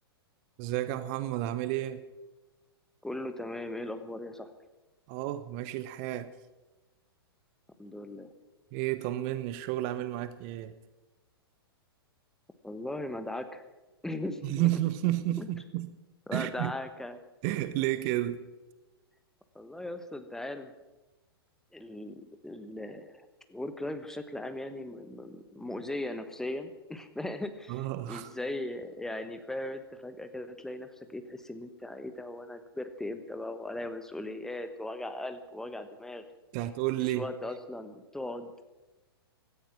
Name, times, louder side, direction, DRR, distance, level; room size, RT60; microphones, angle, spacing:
voice 1, 0.6-2.0 5.1-6.3 8.7-10.7 14.4-15.9 16.3-16.7 17.4-18.5 27.7-28.3 36.5-37.3, right 15 dB, 35° right, 0.8 m, -31 dB
voice 2, 3.0-4.5 7.8-8.3 12.6-13.6 14.0-14.7 15.4-15.5 16.3-17.2 19.5-20.7 21.7-23.1 23.5-36.2 37.1-38.5, left 1 dB, 5° left, 1.1 m, -38 dB
17.0 x 13.5 x 5.9 m
figure-of-eight pair, 105°, 13 cm